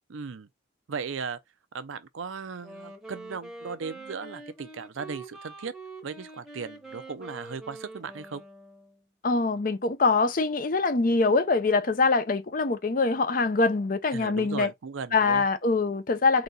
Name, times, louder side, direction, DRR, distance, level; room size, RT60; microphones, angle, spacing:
voice 1, 0.1-0.5 0.9-1.4 1.7-5.7 6.0-8.4 14.1-15.5, right 5 dB, 85° right, 0.6 m, -37 dB
Wind instrument woodwind instrument, 2.5-9.0, right 2 dB, ahead, 0.9 m, -45 dB
voice 2, 9.2-14.7 15.1-16.4, left 3 dB, 45° left, 0.6 m, -24 dB
4.1 x 2.9 x 3.9 m
head